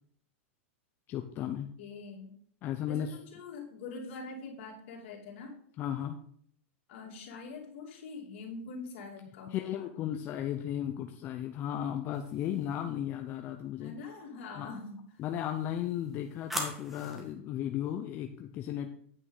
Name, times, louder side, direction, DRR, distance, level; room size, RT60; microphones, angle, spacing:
voice 1, 1.1-1.7 2.6-3.1 5.8-6.2 9.5-13.9 14.5-14.7 15.2-18.9, left 10 dB, 30° left, 5 dB, 0.6 m, -35 dB
voice 2, 1.8-2.4 2.9-5.6 6.9-9.9 13.8-15.2, left 4 dB, 55° left, -1 dB, 2.9 m, -44 dB
sound 1, 12.1-12.8 15.2-17.3, left 1 dB, 5° right, 1.5 m, -41 dB
8.8 x 5.3 x 5.4 m, 0.62 s
supercardioid pair, 150°, 7 cm